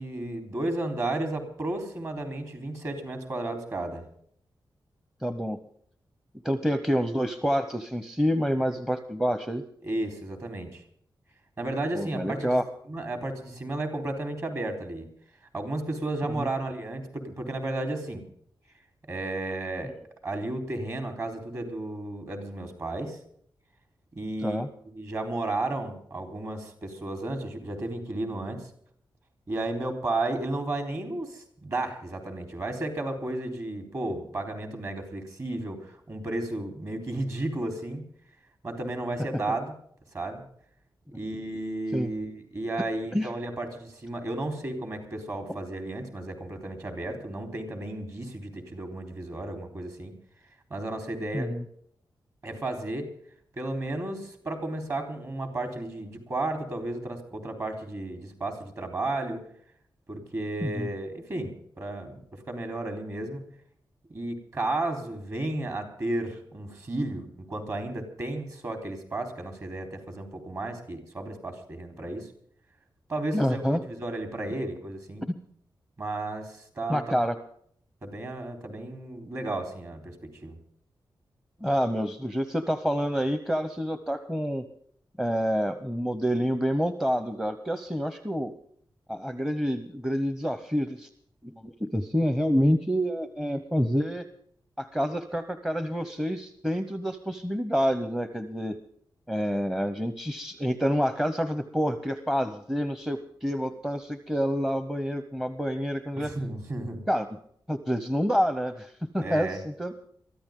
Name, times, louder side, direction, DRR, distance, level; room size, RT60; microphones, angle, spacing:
voice 1, 0.0-4.0 9.8-10.8 11.6-12.6 12.9-15.1 15.5-18.2 19.1-19.9 20.2-23.2 24.1-24.7 25.0-28.7 29.5-38.0 38.6-39.7 40.1-40.4 41.1-50.1 50.7-51.5 52.4-53.1 53.5-59.4 60.1-63.4 64.1-72.3 73.1-75.2 76.0-77.2 78.0-80.1 80.4-80.6 106.2-107.0 109.2-109.6, right 2 dB, 40° right, 5 dB, 4.0 m, -33 dB
voice 2, 5.2-5.6 6.4-9.6 11.9-12.6 16.4-16.5 19.8-20.0 24.4-24.7 39.5-39.6 41.9-42.1 43.1-43.3 51.3-51.6 60.6-60.9 73.3-73.8 76.9-77.3 81.6-84.6 85.2-88.5 89.1-91.1 91.4-94.2 94.8-98.8 99.3-106.3 107.1-107.3 107.7-109.9, equal, 5° right, 10 dB, 0.8 m, -28 dB
23.0 x 14.5 x 3.8 m, 0.64 s
wide cardioid pair, 150°, 8 cm